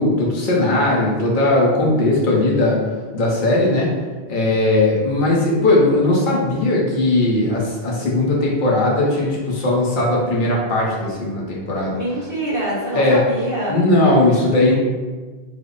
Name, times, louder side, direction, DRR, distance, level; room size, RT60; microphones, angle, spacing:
voice 1, 0.0-2.8 3.1-3.9 4.3-12.0 12.9-13.2 13.7-14.8, left 2 dB, 55° left, -3 dB, 0.9 m, -18 dB
voice 2, 11.9-13.8 14.6-14.8, right 1 dB, 20° left, -10 dB, 1.0 m, -25 dB
3.3 x 2.0 x 3.8 m, 1.3 s
omnidirectional pair, 1.0 m